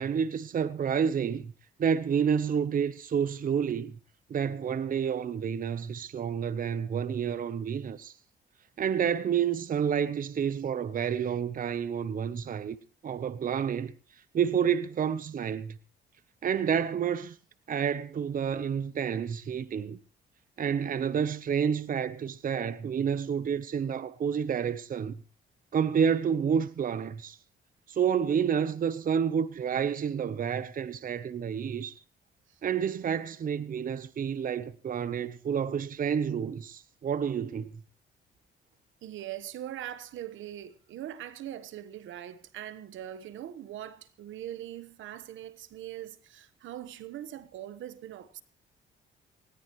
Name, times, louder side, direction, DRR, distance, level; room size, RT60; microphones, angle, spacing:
voice 1, 0.0-1.5 1.8-3.9 4.3-8.1 8.8-12.8 13.0-13.9 14.3-15.8 16.4-17.4 17.7-20.0 20.6-25.2 25.7-27.4 27.9-32.0 32.6-37.7, right 7 dB, 45° right, 0.8 m, -29 dB
voice 2, 39.0-48.4, right 12 dB, 80° right, 1.2 m, -41 dB
19.5 x 17.0 x 3.1 m
cardioid pair, 90°, 20 cm